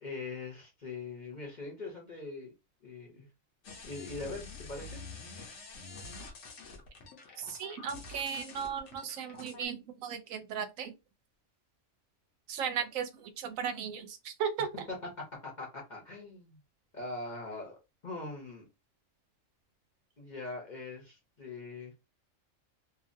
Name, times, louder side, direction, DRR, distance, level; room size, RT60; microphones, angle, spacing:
voice 1, 0.0-2.5 2.8-3.3 3.8-5.0 14.6-16.6 16.9-17.8 18.0-18.7 20.2-21.9, left 3 dB, 40° left, 0.8 m, -42 dB
sound 1, 3.6-9.7, left 3 dB, 65° left, 1.0 m, -47 dB
voice 2, 7.4-10.9 12.5-14.7, right 7 dB, 90° right, 1.0 m, -36 dB
2.7 x 2.4 x 2.5 m
omnidirectional pair, 1.3 m